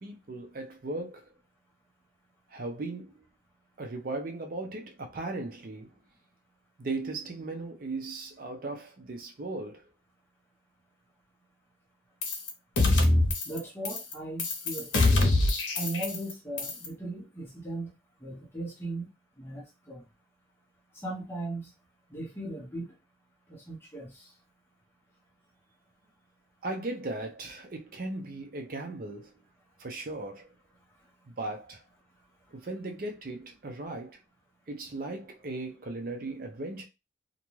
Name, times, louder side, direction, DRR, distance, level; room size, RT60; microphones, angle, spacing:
voice 1, 0.0-1.2 2.5-3.1 3.8-5.9 6.8-9.8 26.6-29.3 29.8-30.5 31.3-31.8 32.5-34.2 34.7-36.9, right 2 dB, 50° right, 0.5 m, -37 dB
sound 1, 12.2-12.5 12.8-13.6 13.8-14.1 14.4-16.3 16.6-16.9, left 2 dB, 85° left, 0.7 m, -24 dB
voice 2, 13.5-15.1 15.8-17.9 18.2-19.1 19.4-20.0 21.0-21.7 22.1-22.8 23.5-24.1, right 2 dB, 15° left, 0.7 m, -37 dB
2.5 x 2.2 x 3.0 m
head